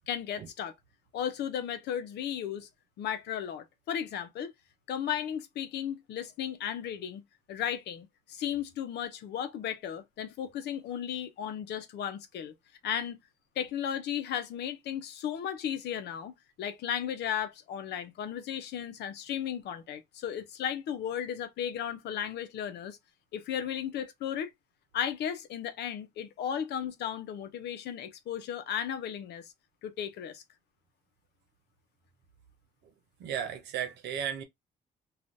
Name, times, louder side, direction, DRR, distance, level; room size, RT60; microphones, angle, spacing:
voice 1, 0.1-0.7 1.1-2.7 3.0-4.5 4.9-7.2 7.5-12.5 12.8-13.2 13.6-23.0 23.3-24.5 24.9-29.5 29.8-30.4, left 9 dB, 75° left, 0.7 m, -35 dB
voice 2, 33.2-34.4, right 9 dB, 80° right, 0.9 m, -34 dB
2.6 x 2.4 x 3.3 m
cardioid pair, 75°, 17 cm